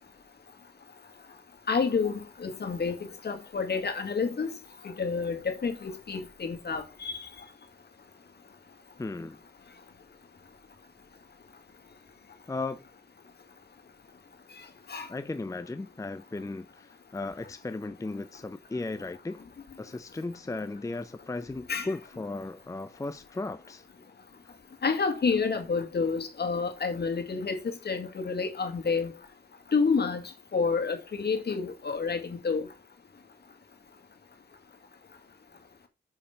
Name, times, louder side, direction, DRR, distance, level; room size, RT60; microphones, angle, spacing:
voice 1, 1.7-4.5 4.8-7.3 14.9-15.1 21.7-21.9 24.8-27.6 27.9-29.1 29.7-30.2 30.5-32.7, left 5 dB, 60° left, 2.0 m, -29 dB
voice 2, 9.0-9.4 12.5-12.8 15.1-19.4 19.8-23.9, left 3 dB, 15° left, 0.6 m, -36 dB
6.7 x 5.2 x 5.6 m
cardioid pair, 75°, 19 cm